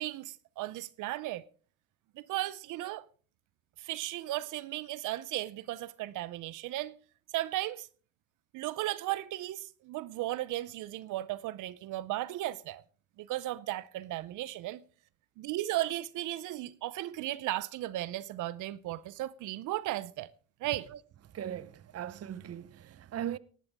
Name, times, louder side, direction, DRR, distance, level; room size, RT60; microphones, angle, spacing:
voice 1, 0.0-1.4 2.2-3.1 3.8-6.9 7.3-7.9 8.5-12.8 13.2-14.8 15.4-20.3 20.6-20.9, right 15 dB, 85° right, 0.6 m, -35 dB
voice 2, 21.3-23.4, right 10 dB, 55° right, 0.8 m, -39 dB
17.0 x 11.0 x 3.5 m
cardioid pair, 90°, 30 cm